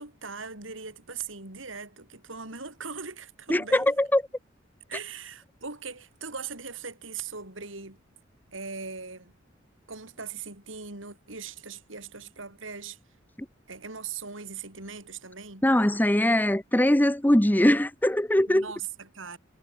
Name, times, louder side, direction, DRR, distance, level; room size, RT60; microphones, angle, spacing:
voice 1, 0.0-4.0 4.9-8.0 8.5-9.3 9.9-13.0 13.7-15.6 18.5-19.4, right 5 dB, 80° right, 5.4 m, -40 dB
voice 2, 3.5-4.2 15.6-18.6, left 1 dB, 10° left, 1.0 m, -21 dB
head